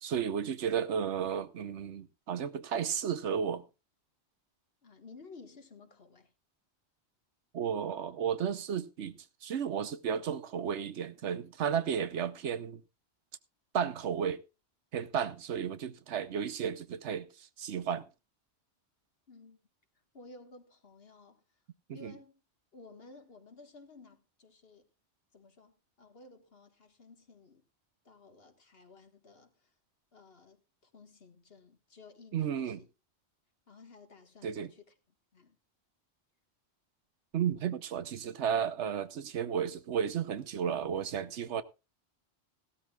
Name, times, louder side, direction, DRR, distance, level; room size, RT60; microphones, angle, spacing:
voice 1, 0.0-3.7 7.5-12.8 13.7-14.4 14.9-18.1 21.9-22.1 32.3-32.8 34.4-34.7 37.3-41.6, right 8 dB, 85° right, 1.1 m, -33 dB
voice 2, 4.8-6.3 19.3-19.6 20.1-21.4 21.9-22.4 22.7-24.9 25.3-27.6 28.1-29.7 30.1-32.9 33.7-34.9 35.3-35.6, left 3 dB, 60° left, 1.8 m, -55 dB
17.0 x 13.0 x 2.4 m
omnidirectional pair, 1.1 m